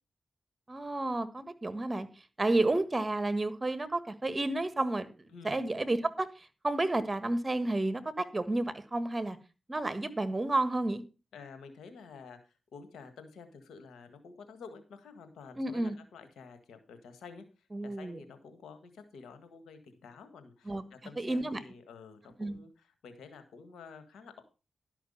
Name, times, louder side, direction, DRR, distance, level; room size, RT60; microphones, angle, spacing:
voice 1, 0.7-2.1 2.4-5.1 5.4-6.3 6.6-9.4 9.7-11.0 15.6-16.0 17.7-18.2 20.6-20.8 21.2-21.6 22.4-22.6, right 2 dB, 30° right, 14 dB, 1.4 m, -31 dB
voice 2, 5.3-5.7 11.3-12.4 12.7-17.4 17.8-24.4, left 5 dB, 85° left, 9 dB, 1.6 m, -50 dB
12.0 x 5.8 x 5.4 m, 0.31 s
supercardioid pair, 40°, 0 cm